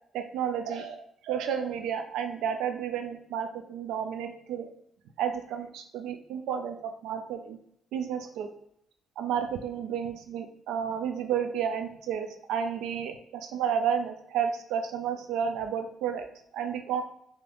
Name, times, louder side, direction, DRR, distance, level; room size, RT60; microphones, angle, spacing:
voice 1, 0.1-4.7 5.2-7.6 7.9-8.5 9.2-16.3 16.5-17.0, right 8 dB, 90° right, 6 dB, 0.3 m, -31 dB
3.3 x 2.5 x 2.5 m, 0.72 s
cardioid pair, 90°, 0 cm